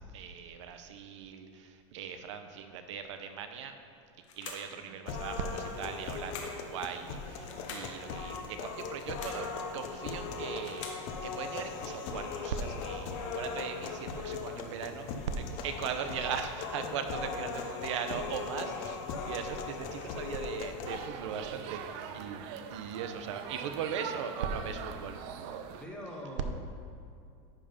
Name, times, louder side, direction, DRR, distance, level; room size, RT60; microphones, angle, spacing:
voice 1, 0.1-3.7 4.4-10.9 11.2-15.1 15.4-19.0 19.2-21.8 22.1-25.2, right 6 dB, 75° right, 7 dB, 0.7 m, -39 dB
sound 1, 4.2-4.8 6.1-6.7 7.4-7.9 8.9-9.5 10.3-11.1, left 5 dB, 90° left, 1.4 m, -45 dB
sound 2, 5.1-21.1, left 5 dB, 40° left, 0.6 m, -39 dB
voice 2, 7.5-8.0 14.5-15.1 16.0-16.1 16.7-17.3 19.7-19.9 25.7-26.5, equal, 5° left, -1 dB, 0.8 m, -46 dB
sound 3, 20.9-25.8, right 8 dB, 35° right, 0.4 m, -42 dB
10.0 x 3.6 x 5.6 m, 2.4 s
supercardioid pair, 170°, 15 cm